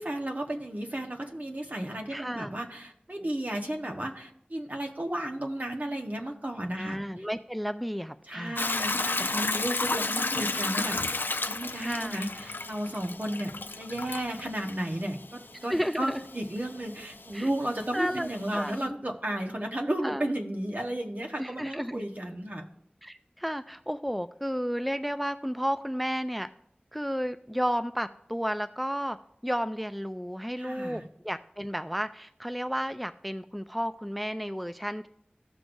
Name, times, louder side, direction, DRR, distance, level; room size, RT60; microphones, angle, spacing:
voice 1, 0.0-7.0 8.3-22.7 30.6-31.1, right 1 dB, 50° right, 2 dB, 1.2 m, -33 dB
voice 2, 2.1-2.5 6.8-8.6 11.8-12.2 15.7-16.2 17.3-17.5 17.9-19.0 20.0-20.3 21.4-22.0 23.0-26.5 26.9-29.2 29.4-35.1, equal, ahead, 11 dB, 0.3 m, -32 dB
Hiss / Toilet flush / Trickle dribble, 8.6-18.8, left 3 dB, 90° left, 0.4 m, -33 dB
16.0 x 6.2 x 2.6 m, 0.70 s
wide cardioid pair, 45°, 3 cm